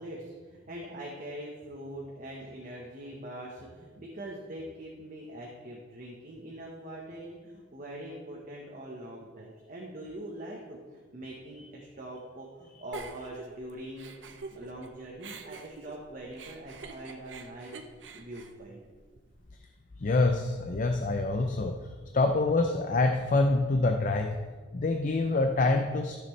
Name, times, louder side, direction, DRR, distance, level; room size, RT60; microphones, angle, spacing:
voice 1, 0.0-17.8 18.1-18.8, right 1 dB, 45° right, -2 dB, 1.2 m, -43 dB
Giggle, 12.9-14.9 15.2-19.4, right 4 dB, 80° right, 0.8 m, -45 dB
voice 2, 20.0-24.3 24.7-26.2, left 2 dB, 45° left, 4 dB, 0.5 m, -26 dB
13.5 x 6.8 x 3.3 m, 1.5 s
head